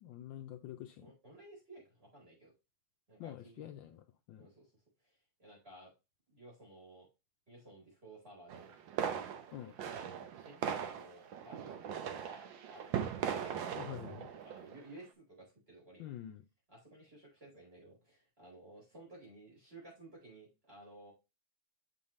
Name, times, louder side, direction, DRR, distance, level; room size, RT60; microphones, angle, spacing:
voice 1, 0.0-1.1 3.2-4.0 4.3-4.5 9.5-9.7 13.8-14.3 16.0-16.4, left 11 dB, 75° left, 1.2 m, -46 dB
voice 2, 1.0-2.5 3.1-3.7 4.4-4.7 5.4-5.9 6.3-7.1 7.5-8.7 9.6-13.7 14.0-16.1 16.7-21.1, right 2 dB, 25° right, 4.5 m, -56 dB
sound 1, 8.5-14.9, right 8 dB, 70° right, 1.5 m, -39 dB
7.2 x 5.4 x 3.1 m
omnidirectional pair, 2.3 m